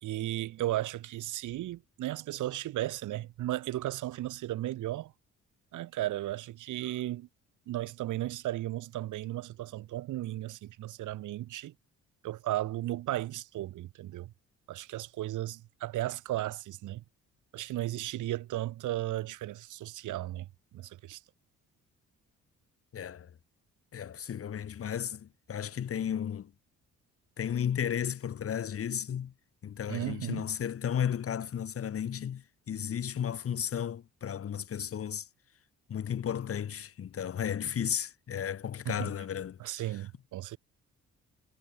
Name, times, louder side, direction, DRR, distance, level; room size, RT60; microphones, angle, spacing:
voice 1, 0.0-5.1 5.7-7.3 7.7-11.7 12.2-14.3 14.7-17.0 17.5-20.5 20.7-21.2 29.9-30.4 38.8-39.1 39.6-40.6, right 14 dB, 80° right, 1.6 m, -35 dB
voice 2, 22.9-23.3 23.9-26.5 27.4-29.3 29.6-35.3 35.9-40.1, left 9 dB, 50° left, 1.4 m, -34 dB
cardioid pair, 90°, 30 cm